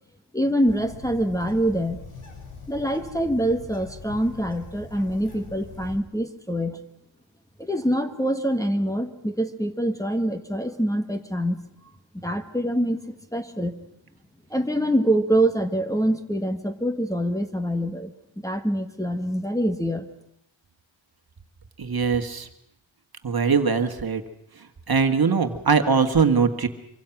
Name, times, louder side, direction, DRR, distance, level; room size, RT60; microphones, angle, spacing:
voice 1, 0.3-2.0 2.7-6.8 7.6-11.6 12.1-13.7 14.5-20.0, right 1 dB, 5° left, 4 dB, 1.5 m, -25 dB
Bird, 0.7-6.0, left 3 dB, 80° left, 5.8 m, -42 dB
voice 2, 21.8-22.5 23.2-24.2 24.9-26.7, right 5 dB, 45° right, 7 dB, 1.9 m, -21 dB
25.5 x 24.5 x 6.0 m, 0.77 s
wide cardioid pair, 130°, 48 cm